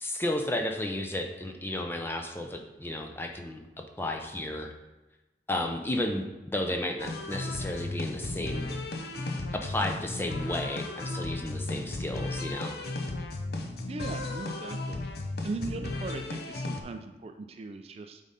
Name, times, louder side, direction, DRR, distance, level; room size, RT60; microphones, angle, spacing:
voice 1, 0.0-4.7 5.5-6.3 6.5-8.8 9.6-12.8, left 1 dB, 15° left, 3 dB, 0.6 m, -33 dB
sound 1, 7.0-16.8, left 2 dB, 60° left, 0.7 m, -35 dB
voice 2, 13.9-15.0 15.4-18.2, right 3 dB, 35° right, 7 dB, 0.3 m, -38 dB
8.7 x 3.7 x 4.1 m, 1.1 s
head